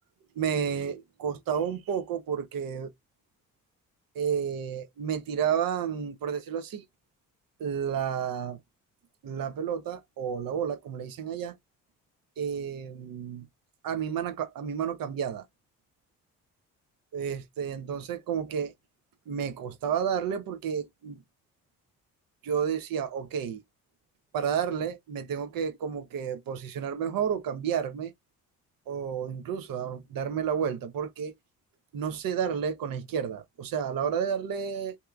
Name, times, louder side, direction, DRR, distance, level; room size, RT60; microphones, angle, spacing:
voice 1, 0.4-2.9 4.1-6.8 7.6-8.6 9.2-11.5 12.4-13.5 13.8-15.4 17.1-18.7 19.3-21.2 22.4-23.6 24.3-28.1 28.9-31.3 31.9-35.0, right 7 dB, 65° right, 0.8 m, -31 dB
2.8 x 2.3 x 2.3 m
supercardioid pair, 55°, 37 cm